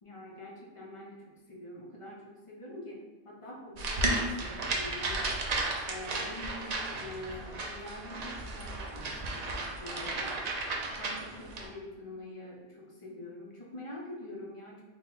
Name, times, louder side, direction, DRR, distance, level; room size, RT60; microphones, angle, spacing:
voice 1, 0.0-5.3 5.9-10.7 11.0-14.8, left 1 dB, 45° left, -2 dB, 0.4 m, -45 dB
sound 1, 3.8-11.7, right 2 dB, 55° right, 0.4 m, -34 dB
3.9 x 2.2 x 3.8 m, 1.2 s
omnidirectional pair, 1.3 m